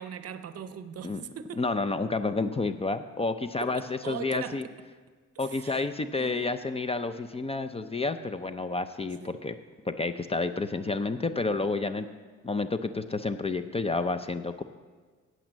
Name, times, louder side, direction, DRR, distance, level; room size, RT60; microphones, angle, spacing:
voice 1, 0.0-1.6 3.6-4.7 5.4-5.9 6.1-6.5 9.2-9.4, right 8 dB, 55° right, 0.7 m, -40 dB
voice 2, 1.6-4.6 5.4-9.6 9.9-12.1 12.4-14.6, left 3 dB, 20° left, 0.5 m, -30 dB
8.7 x 8.1 x 7.4 m
cardioid pair, 90°, 30 cm